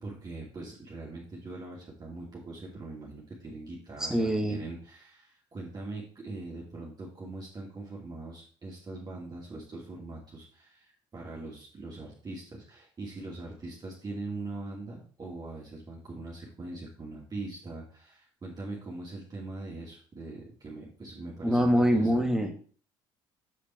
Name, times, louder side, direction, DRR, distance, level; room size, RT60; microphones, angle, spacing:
voice 1, 0.0-22.2, right 2 dB, 35° right, -5 dB, 2.7 m, -42 dB
voice 2, 4.1-4.6 21.4-22.5, equal, 5° right, 3 dB, 1.9 m, -24 dB
7.6 x 5.2 x 4.5 m, 0.43 s
hypercardioid pair, 65°, 12 cm